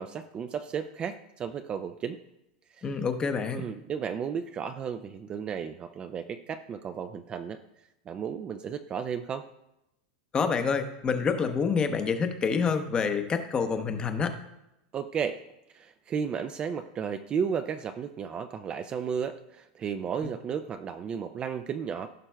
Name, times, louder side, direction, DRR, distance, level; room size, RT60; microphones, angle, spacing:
voice 1, 0.0-2.2 2.7-2.8 3.5-7.6 8.1-9.5 14.9-15.4 15.7-22.1, right 7 dB, 20° right, 9 dB, 0.3 m, -33 dB
voice 2, 2.8-3.6 10.3-14.3, left 5 dB, 20° left, 7 dB, 0.7 m, -27 dB
15.5 x 5.9 x 2.2 m, 0.88 s
supercardioid pair, 145°, 5 cm